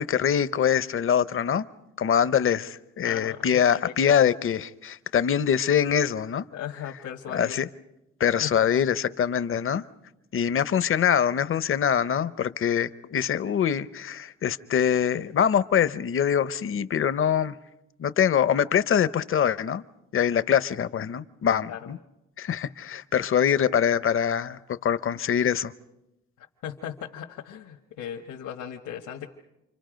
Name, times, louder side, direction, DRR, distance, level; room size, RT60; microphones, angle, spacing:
voice 1, 0.0-1.6 2.0-6.4 7.3-7.7 8.2-9.8 10.3-17.6 18.0-19.8 20.1-22.0 22.4-25.7, left 8 dB, 45° left, 0.8 m, -24 dB
voice 2, 3.0-4.2 6.5-7.6 8.4-8.5 21.7-21.9 26.4-29.3, left 9 dB, 80° left, 1.5 m, -37 dB
29.0 x 25.0 x 5.2 m
cardioid pair, 90°, 30 cm